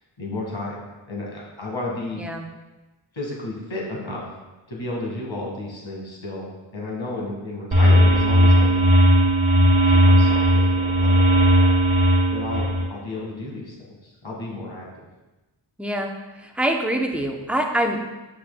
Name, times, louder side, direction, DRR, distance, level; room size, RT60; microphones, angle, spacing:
voice 1, 0.2-2.2 3.1-4.3 4.7-8.9 9.9-11.7 12.3-14.9, left 2 dB, 80° left, -3 dB, 1.9 m, -32 dB
sound 1, 7.7-12.8, equal, 85° right, 1.6 m, -16 dB
voice 2, 15.8-16.1 16.4-18.1, right 1 dB, 5° right, 2 dB, 0.7 m, -25 dB
8.0 x 5.8 x 2.2 m, 1.1 s
wide cardioid pair, 45°, 46 cm